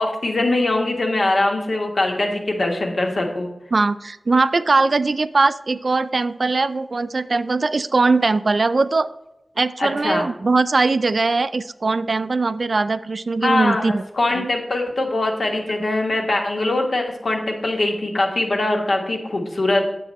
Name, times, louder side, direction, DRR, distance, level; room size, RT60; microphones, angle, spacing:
voice 1, 0.0-3.5 9.8-10.2 13.4-19.9, left 2 dB, 70° left, 2 dB, 1.4 m, -22 dB
voice 2, 3.7-9.1 9.6-14.0 14.3-14.4, right 3 dB, 65° right, 13 dB, 0.4 m, -20 dB
8.2 x 6.8 x 4.2 m, 0.88 s
wide cardioid pair, 60°, 0 cm